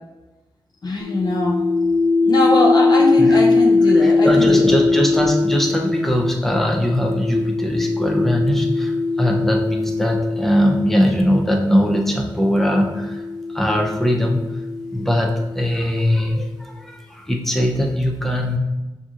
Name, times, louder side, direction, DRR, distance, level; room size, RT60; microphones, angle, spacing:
voice 1, 0.8-1.7 2.2-4.8, left 1 dB, 50° left, -1 dB, 0.6 m, -21 dB
sound 1, 1.0-11.4 12.3-16.0, left 3 dB, 55° right, 0.9 m, -21 dB
voice 2, 3.9-13.2 13.5-14.4 14.9-18.6, equal, 5° left, 0 dB, 0.6 m, -20 dB
6.0 x 2.6 x 2.5 m, 1.1 s
wide cardioid pair, 90°, 9 cm